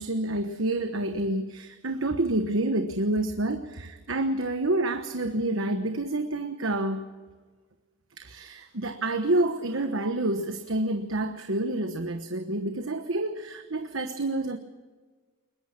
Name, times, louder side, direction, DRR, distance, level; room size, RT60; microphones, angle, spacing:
voice 1, 0.0-7.1 8.2-14.6, right 2 dB, 70° right, 6 dB, 1.2 m, -28 dB
21.5 x 21.0 x 6.0 m, 1.4 s
head